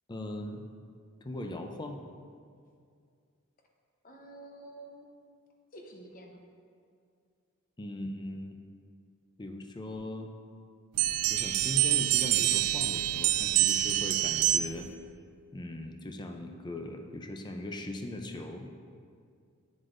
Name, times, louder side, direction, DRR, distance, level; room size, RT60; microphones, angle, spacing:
voice 1, 0.1-0.7 1.2-2.0 7.8-8.6 9.4-10.3 11.3-14.9 15.5-18.7, left 1 dB, 20° left, 4 dB, 0.5 m, -39 dB
voice 2, 4.0-5.1 5.7-6.4, right 1 dB, 40° left, 1 dB, 0.8 m, -49 dB
sound 1, 11.0-14.9, right 13 dB, 85° right, 0.3 m, -26 dB
8.1 x 7.7 x 2.5 m, 2.3 s
head